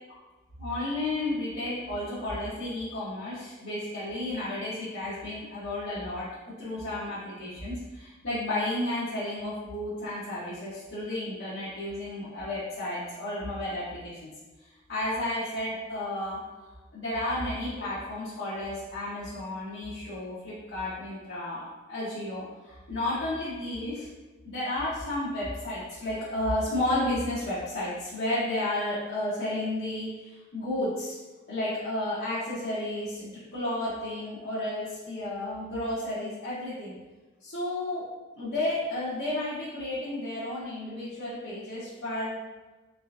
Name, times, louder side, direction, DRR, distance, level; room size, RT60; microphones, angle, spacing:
voice 1, 0.6-14.3 14.6-16.4 16.9-24.1 24.4-31.2 31.5-37.0 37.4-38.0 38.3-42.4, left 1 dB, 80° left, -11 dB, 0.9 m, -32 dB
3.6 x 3.3 x 2.5 m, 1.2 s
head